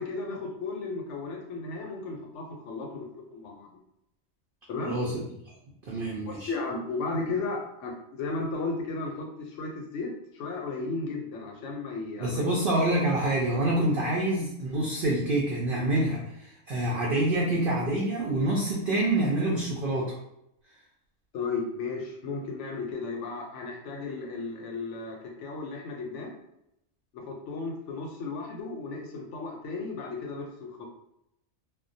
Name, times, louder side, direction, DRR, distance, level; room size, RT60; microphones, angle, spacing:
voice 1, 0.0-3.7 4.7-5.0 6.3-12.5 21.3-26.3 27.1-30.8, left 3 dB, 65° left, 1 dB, 0.8 m, -35 dB
voice 2, 4.8-5.2 5.9-6.5 12.2-20.2, right 1 dB, 70° right, -3 dB, 0.5 m, -26 dB
2.2 x 2.1 x 2.6 m, 0.80 s
omnidirectional pair, 1.4 m